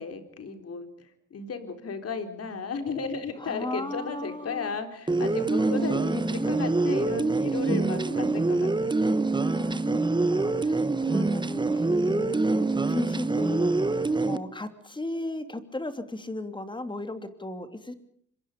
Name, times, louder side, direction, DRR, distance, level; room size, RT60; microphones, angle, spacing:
voice 1, 0.0-9.1, left 5 dB, 50° left, 7 dB, 4.2 m, -34 dB
voice 2, 3.4-4.7 5.6-6.5 7.5-8.4 9.4-17.9, left 2 dB, 15° left, 9 dB, 2.9 m, -36 dB
sound 1, 5.1-14.4, right 3 dB, 15° right, 1.2 m, -25 dB
26.0 x 23.5 x 5.3 m, 0.62 s
cardioid pair, 90°, 30 cm